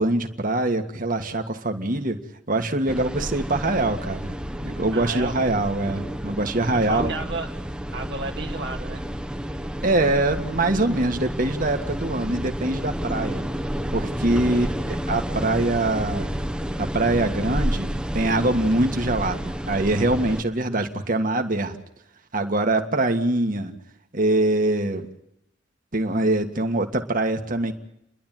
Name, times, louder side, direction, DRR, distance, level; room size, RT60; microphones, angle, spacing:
voice 1, 0.0-2.2 2.5-4.3 4.6-7.2 9.8-13.5 13.9-16.3 16.8-21.8 22.3-23.7 24.1-25.1 25.9-27.7, right 2 dB, 50° right, 5 dB, 1.8 m, -23 dB
sound 1, 2.9-20.4, equal, 5° right, 1.0 m, -30 dB
voice 2, 4.9-5.3 6.7-7.5 7.9-9.1 14.3-14.7, right 3 dB, 70° right, 0 dB, 1.9 m, -33 dB
30.0 x 12.0 x 9.2 m, 0.80 s
head